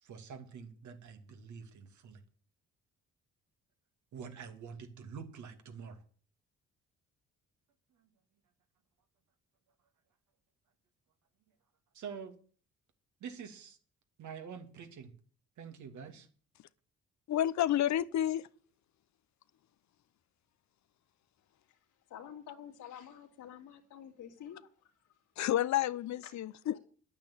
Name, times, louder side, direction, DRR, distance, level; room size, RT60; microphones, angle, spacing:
voice 1, 0.0-2.2 4.1-6.0 8.0-8.1 11.9-12.4 13.2-13.8 14.2-15.1 15.6-16.3, right 6 dB, 70° right, 2.6 m, -46 dB
voice 2, 17.3-18.5 25.4-26.8, left 12 dB, 65° left, 0.7 m, -30 dB
voice 3, 22.1-24.9 26.2-26.3 26.7-26.8, left 9 dB, 80° left, 2.6 m, -49 dB
11.0 x 8.8 x 8.6 m
cardioid pair, 90°, 30 cm